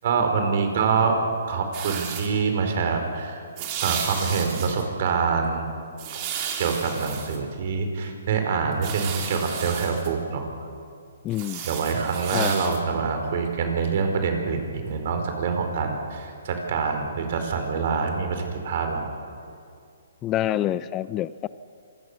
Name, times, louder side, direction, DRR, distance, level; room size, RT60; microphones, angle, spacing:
voice 1, 0.0-1.2 1.5-3.4 3.8-5.7 6.1-6.3 6.6-10.5 11.6-19.1, right 5 dB, 55° right, 5 dB, 4.8 m, -25 dB
sound 1, 1.7-2.3 3.6-4.8 6.0-7.4 8.7-10.1 11.3-12.8, right 7 dB, 35° right, 4.3 m, -33 dB
voice 2, 11.2-11.7 12.3-12.7 20.2-21.5, left 12 dB, 25° left, 17 dB, 0.5 m, -27 dB
26.0 x 21.5 x 7.0 m, 2.3 s
hypercardioid pair, 140°, 0 cm